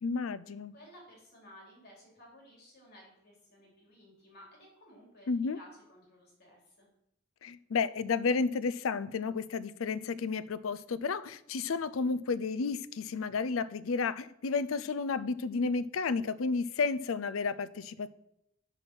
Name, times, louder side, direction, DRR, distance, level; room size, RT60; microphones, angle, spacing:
voice 1, 0.0-0.7 5.3-5.6 7.4-18.1, left 4 dB, 85° left, 17 dB, 0.5 m, -32 dB
voice 2, 0.7-6.9, left 1 dB, 55° left, -2 dB, 3.5 m, -56 dB
8.0 x 6.1 x 6.1 m, 0.81 s
head